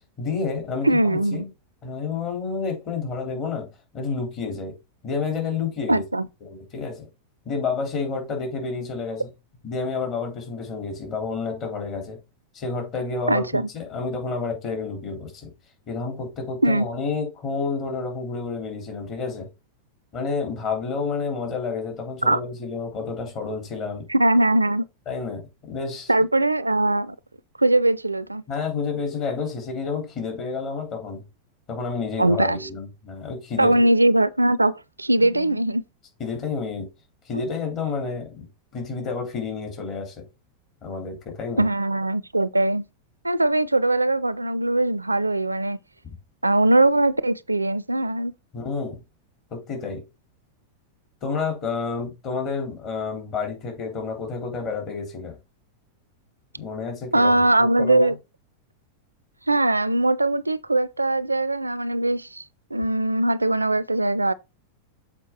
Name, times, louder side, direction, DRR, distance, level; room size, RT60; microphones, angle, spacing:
voice 1, 0.2-1.4 1.8-3.7 3.9-4.7 5.0-6.0 6.4-7.1 7.4-9.3 9.6-12.2 12.5-15.5 15.9-19.5 20.1-24.1 25.1-26.1 28.5-31.2 31.7-33.8 35.2-35.6 36.2-36.9 37.2-38.4 38.7-40.2 40.8-41.7 48.5-49.0 49.5-50.0 51.2-55.4 56.6-57.4 57.8-58.1, left 4 dB, 35° left, 3.3 m, -30 dB
voice 2, 0.8-1.4 5.9-6.3 13.3-13.7 16.6-16.9 22.2-22.4 24.1-24.8 26.1-27.2 27.6-28.4 32.2-32.6 33.6-34.7 35.0-35.8 37.3-37.4 41.6-42.8 43.2-45.8 46.4-48.3 57.1-58.1 59.5-62.4 62.7-64.3, right 1 dB, 85° right, 0.4 m, -21 dB
7.4 x 4.6 x 4.2 m
figure-of-eight pair, 90°, 0 cm